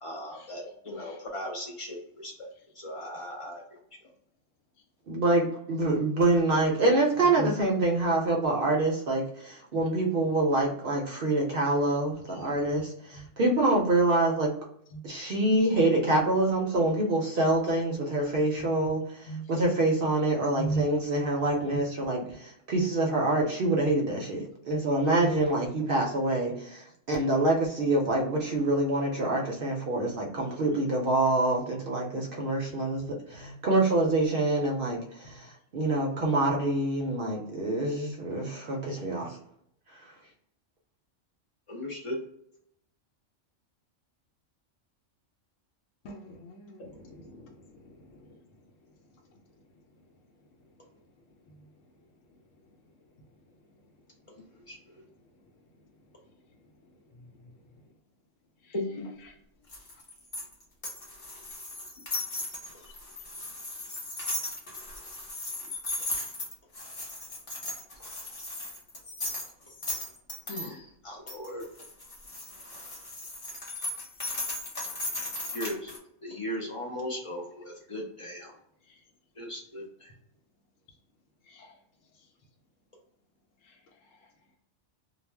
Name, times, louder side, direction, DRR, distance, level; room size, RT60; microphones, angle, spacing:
voice 1, 0.0-2.5 2.8-3.6 41.7-42.2 54.7-55.0 58.7-59.0 70.5-71.7 75.5-75.9 76.2-78.5 79.4-80.1, left 1 dB, 55° left, -1 dB, 0.3 m, -37 dB
voice 2, 5.1-14.5 15.0-39.4 39.9-40.1, right 2 dB, 60° right, -1 dB, 0.7 m, -26 dB
voice 3, 12.5-12.8 19.3-19.4 20.6-20.8 46.0-46.9 81.6-81.7, right 2 dB, 85° left, 0 dB, 0.9 m, -35 dB
sound 1, 59.7-70.7 71.3-76.0, left 2 dB, 35° left, 0.8 m, -37 dB
2.4 x 2.0 x 3.2 m, 0.72 s
omnidirectional pair, 1.3 m